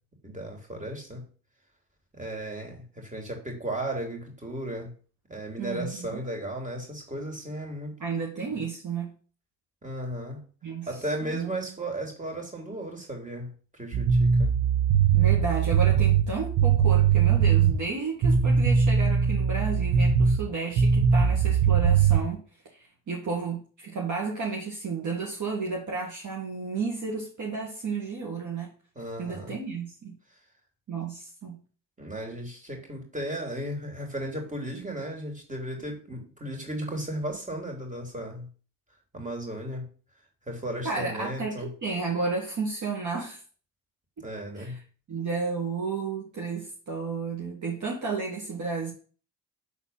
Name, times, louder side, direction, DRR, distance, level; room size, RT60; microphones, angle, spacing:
voice 1, 0.2-1.2 2.1-4.9 5.3-8.0 9.8-10.4 10.9-14.5 28.9-29.5 32.0-38.5 39.1-39.9 40.5-41.7 44.2-44.8, right 1 dB, 15° right, 2 dB, 3.2 m, -35 dB
voice 2, 5.6-6.2 8.0-9.1 10.6-10.9 11.2-11.5 15.1-22.4 22.7-28.7 29.2-30.2 30.9-31.6 40.8-43.4 44.2-44.3 44.6-44.8 45.1-48.9, right 4 dB, 45° right, -2 dB, 2.1 m, -32 dB
sound 1, 13.9-17.8 18.2-20.4 20.8-22.2, right 7 dB, 65° right, 1.3 m, -21 dB
7.0 x 4.2 x 5.7 m, 0.40 s
hypercardioid pair, 60°, 42 cm